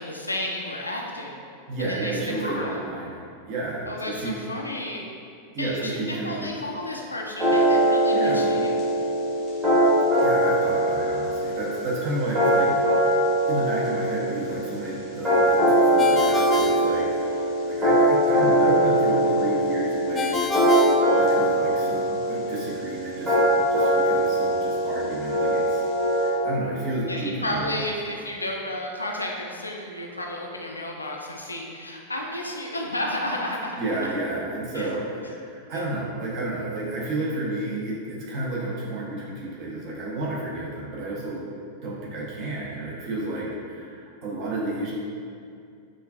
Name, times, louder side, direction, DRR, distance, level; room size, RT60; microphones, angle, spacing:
voice 1, 0.0-1.4 1.8-2.8 3.9-5.0 5.6-8.8 27.1-34.1 34.7-34.9 35.7-35.8, left 1 dB, 80° left, 0 dB, 0.4 m, -32 dB
voice 2, 1.7-3.2 3.4-4.4 5.5-6.5 8.1-8.5 10.1-13.2 13.5-25.8 26.1-27.8 33.8-41.4 41.8-44.9, right 2 dB, 40° right, -5 dB, 0.8 m, -31 dB
sound 1, 7.4-26.3, right 1 dB, 20° right, 1.4 m, -22 dB
Ringtone, 16.0-17.7 20.2-21.8, left 1 dB, 15° left, 0.3 m, -27 dB
4.3 x 2.4 x 2.4 m, 2.3 s
figure-of-eight pair, 90°, 0 cm